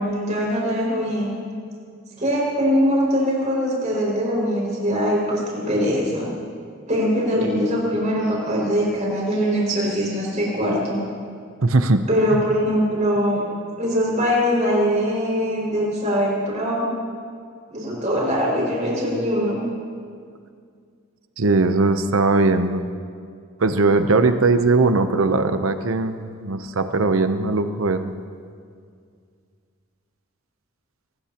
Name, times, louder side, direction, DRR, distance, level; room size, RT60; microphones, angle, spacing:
voice 1, 0.0-1.4 2.2-6.3 6.9-11.0 12.1-13.4 13.8-16.9 17.7-19.6, equal, 35° right, -4 dB, 5.7 m, -22 dB
voice 2, 11.6-12.0 12.3-12.4 21.4-22.9 23.6-28.1, right 3 dB, 85° right, 8 dB, 0.8 m, -19 dB
23.5 x 20.5 x 3.0 m, 2.2 s
head